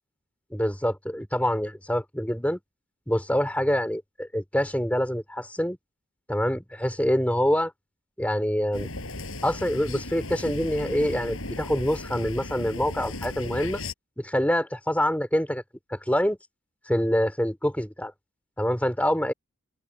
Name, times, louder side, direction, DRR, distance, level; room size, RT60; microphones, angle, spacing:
voice 1, 0.5-2.6 3.1-5.8 6.3-7.7 8.2-8.9 9.4-13.8 14.2-15.6 15.9-16.4 16.9-18.1 18.6-19.3, equal, 5° left, 3.6 m, -25 dB
sound 1, 8.7-13.9, left 2 dB, 75° left, 6.4 m, -36 dB
open air
head